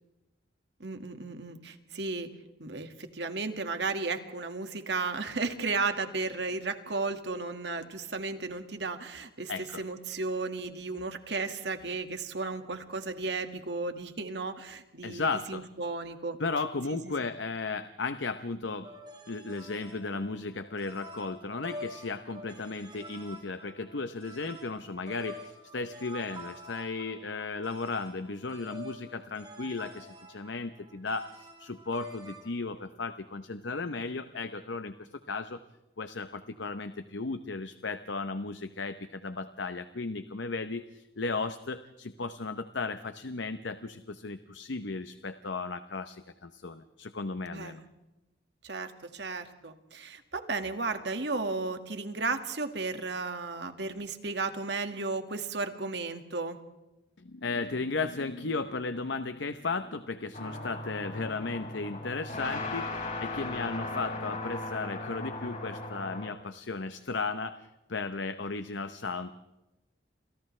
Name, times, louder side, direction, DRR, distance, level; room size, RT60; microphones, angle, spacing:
voice 1, 0.8-2.3 2.6-9.5 9.8-16.4 17.0-17.3 47.5-47.9 48.6-56.6, right 3 dB, 70° right, 7 dB, 1.9 m, -34 dB
voice 2, 9.5-9.8 15.0-15.7 16.4-18.9 19.3-35.6 36.0-47.8 57.2-69.3, left 3 dB, 80° left, 10 dB, 0.9 m, -35 dB
sound 1, 18.8-32.5, equal, 25° right, 5.5 m, -47 dB
sound 2, 60.3-66.3, left 2 dB, 45° left, 5.4 m, -37 dB
30.0 x 27.5 x 3.3 m, 0.98 s
head